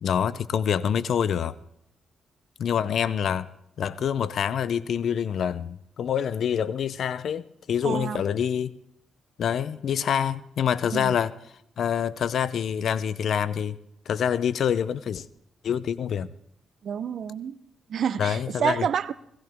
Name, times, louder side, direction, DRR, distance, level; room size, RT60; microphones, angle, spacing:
voice 1, 0.0-1.5 2.6-3.5 3.8-8.7 9.4-11.3 11.8-13.8 14.1-15.3 15.6-16.3 18.2-18.9, left 8 dB, 65° left, 0.6 m, -26 dB
voice 2, 7.8-8.2 10.9-11.2 16.8-17.6 17.9-19.1, right 8 dB, 65° right, 0.7 m, -28 dB
18.0 x 16.0 x 3.6 m
cardioid pair, 70°, 0 cm